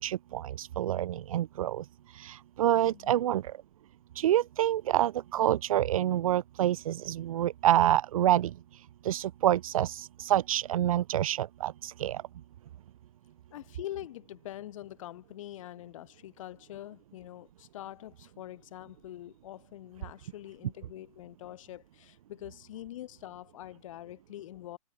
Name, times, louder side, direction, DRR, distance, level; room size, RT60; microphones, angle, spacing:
voice 1, 0.0-1.8 2.1-3.5 4.2-8.5 9.0-12.2, right 12 dB, 75° right, 0.8 m, -27 dB
voice 2, 2.9-3.3 13.5-24.8, left 13 dB, 65° left, 3.9 m, -44 dB
hypercardioid pair, 135°, 18 cm